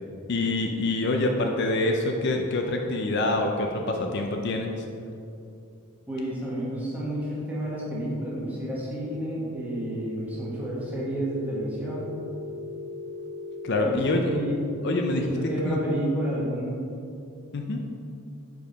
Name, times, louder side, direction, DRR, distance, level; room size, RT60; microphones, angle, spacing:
voice 1, 0.3-4.7 13.6-14.3 14.8-15.3 15.6-15.8 17.5-17.8, left 2 dB, 50° left, 3 dB, 0.4 m, -26 dB
voice 2, 6.1-12.2 13.8-14.8 15.1-16.8, right 1 dB, 5° right, -7 dB, 1.3 m, -30 dB
Telephone, 9.5-14.5, left 2 dB, 60° right, 0.4 m, -38 dB
5.1 x 4.7 x 5.1 m, 2.6 s
head